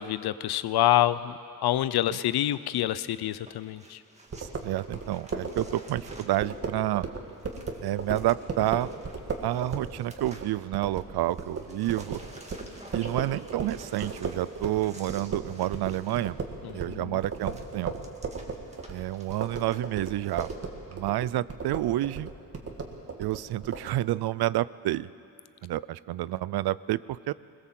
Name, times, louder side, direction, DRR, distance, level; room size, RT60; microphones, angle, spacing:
voice 1, 0.0-1.3 1.6-4.0 16.6-17.2, left 13 dB, 90° left, 16 dB, 0.7 m, -27 dB
sound 1, 3.3-11.0 11.3-20.6, right 1 dB, 20° right, 2.0 m, -51 dB
sound 2, 4.3-14.8 15.1-23.8, right 4 dB, 40° right, 1.9 m, -36 dB
voice 2, 4.4-7.1 7.8-8.9 9.4-12.2 12.9-16.4 16.7-17.9 18.9-20.5 20.9-22.3 23.2-25.1 25.6-27.3, right 15 dB, 85° right, 19 dB, 0.5 m, -29 dB
21.5 x 21.0 x 7.6 m, 2.6 s
wide cardioid pair, 145°, 37 cm